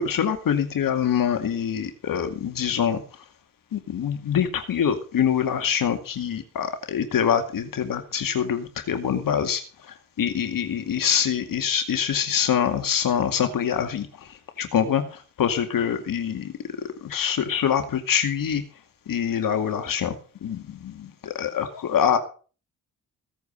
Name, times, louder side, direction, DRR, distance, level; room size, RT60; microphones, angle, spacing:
voice 1, 0.0-3.0 3.7-9.6 9.9-16.5 16.8-18.6 19.1-20.1 20.4-22.2, left 8 dB, 55° left, 7 dB, 2.2 m, -25 dB
16.5 x 9.3 x 5.5 m, 0.38 s
hypercardioid pair, 45°, 41 cm